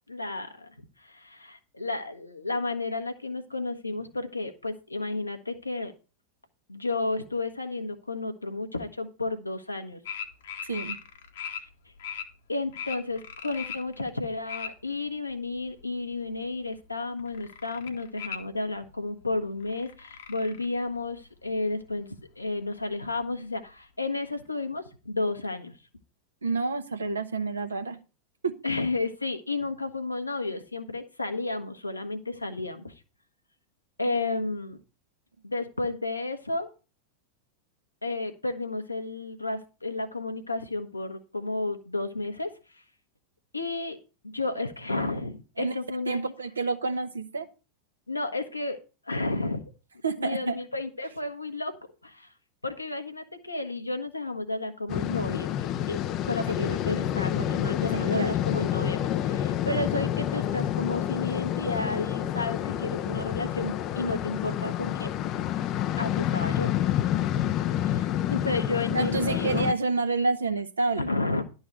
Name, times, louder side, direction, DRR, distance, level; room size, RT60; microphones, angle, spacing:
voice 1, 0.1-0.7 1.0-5.9 6.7-10.0 11.6-11.7 12.5-25.8 28.6-32.9 34.0-34.8 35.4-36.7 38.0-42.8 43.5-44.0 44.2-46.3 48.1-48.8 49.1-49.6 50.2-51.7 52.0-52.3 52.6-56.0 56.3-65.1 66.0-66.7 67.8-69.7 71.0-71.4, left 2 dB, 85° left, 5 dB, 1.3 m, -32 dB
sound 1, 10.0-11.6 12.0-12.2 12.7-14.7 15.1-16.1 16.5-16.9 17.2-18.4 18.9-19.0 19.2-19.3 19.6-20.9 21.2-21.3 21.5-21.6 22.2-22.3 22.8-22.9 23.2-23.3, left 8 dB, 60° left, 1.2 m, -38 dB
voice 2, 10.6-11.0 26.4-28.0 28.4-28.5 34.1-34.2 45.6-45.7 46.1-47.5 50.0-50.6 56.5-56.7 57.9-58.3 68.9-71.0, right 3 dB, 75° right, 8 dB, 1.1 m, -28 dB
sound 2, 54.9-69.7, left 11 dB, 35° left, 0.5 m, -28 dB
11.5 x 3.9 x 7.7 m, 0.34 s
figure-of-eight pair, 90°, 0 cm